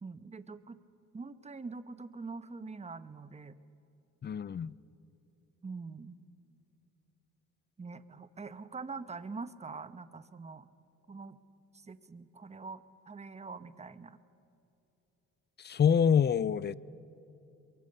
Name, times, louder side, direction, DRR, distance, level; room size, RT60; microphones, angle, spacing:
voice 1, 0.0-0.8 1.1-3.6 5.6-6.2 7.8-10.7 11.1-11.4 11.7-14.2, right 4 dB, 20° right, 1.0 m, -44 dB
voice 2, 4.2-4.7 15.6-16.7, left 7 dB, 35° left, 0.6 m, -26 dB
23.5 x 23.0 x 6.8 m
cardioid pair, 90°, 30 cm